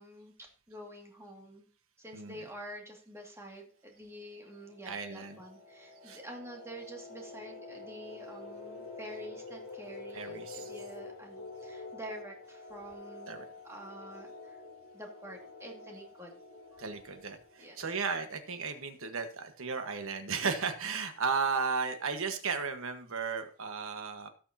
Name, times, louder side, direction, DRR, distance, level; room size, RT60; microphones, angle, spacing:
voice 1, 0.0-1.7 2.0-13.4 13.6-14.6 14.9-16.4 16.7-16.8 17.6-17.8, right 1 dB, 10° right, 0 dB, 2.2 m, -47 dB
voice 2, 2.1-2.5 4.8-5.4 6.0-6.2 10.1-10.7 13.3-13.5 16.8-24.3, right 5 dB, 65° right, 7 dB, 1.4 m, -35 dB
sound 1, 4.1-18.6, left 3 dB, 55° left, 3.7 m, -48 dB
17.5 x 6.4 x 2.8 m, 0.38 s
head